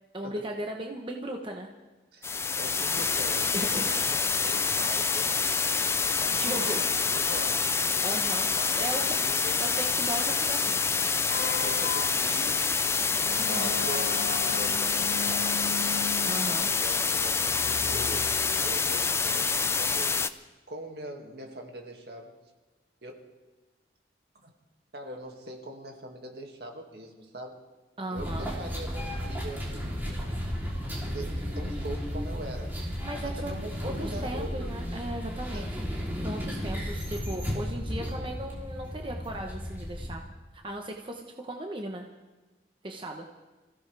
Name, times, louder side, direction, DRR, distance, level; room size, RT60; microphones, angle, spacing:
voice 1, 0.1-1.7 3.5-3.9 6.4-6.8 8.0-8.5 8.7-9.2 9.6-10.8 13.4-13.7 16.2-16.7 28.0-28.5 33.0-33.5 33.8-35.7 36.2-40.2 40.5-42.1 42.8-43.3, right 1 dB, 30° right, 2 dB, 1.0 m, -37 dB
sound 1, 2.2-20.3, left 5 dB, 15° left, 0.4 m, -27 dB
voice 2, 2.6-5.3 6.2-7.6 8.6-9.6 11.4-12.6 13.3-15.8 16.4-20.2 20.7-22.4 23.0-23.1 24.4-24.5 24.9-27.6 28.1-30.3 31.0-32.8 33.2-34.7 35.5-35.7, right 1 dB, 65° right, 2 dB, 2.2 m, -42 dB
sound 2, 11.3-19.0, left 5 dB, 65° left, 0.5 m, -38 dB
sound 3, 28.2-40.1, equal, 10° right, 3.3 m, -34 dB
26.0 x 16.0 x 3.4 m, 1.2 s
head